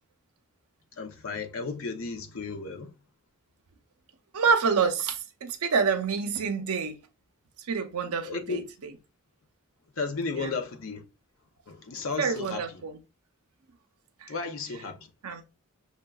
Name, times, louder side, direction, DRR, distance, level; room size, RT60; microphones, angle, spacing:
voice 1, 1.0-2.9 8.2-8.7 10.0-11.0 11.7-12.8 14.3-15.1, left 4 dB, 60° left, 0.6 m, -34 dB
voice 2, 4.3-7.0 7.7-8.6 10.3-10.5 12.2-13.0 14.2-14.3 15.2-15.4, right 5 dB, 80° right, 0.6 m, -27 dB
6.1 x 2.2 x 2.3 m
head